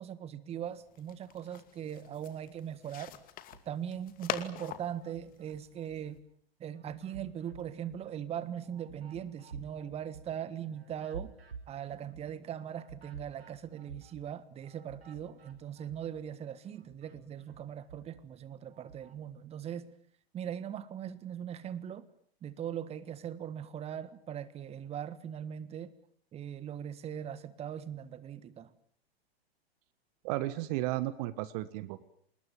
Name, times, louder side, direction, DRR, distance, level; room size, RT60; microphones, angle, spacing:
voice 1, 0.0-3.2 3.6-6.2 6.6-11.3 11.7-19.9 20.3-22.1 22.4-25.9 26.3-28.7, right 9 dB, 20° right, 1.5 m, -40 dB
sound 1, 0.6-6.2, left 12 dB, 25° left, 2.4 m, -44 dB
sound 2, 3.4-4.2 4.6-6.2 6.6-16.3 16.6-19.2, right 5 dB, 75° right, 5.2 m, -52 dB
voice 2, 30.2-32.0, right 17 dB, 40° right, 1.4 m, -34 dB
27.0 x 20.5 x 9.2 m
figure-of-eight pair, 110°, 31 cm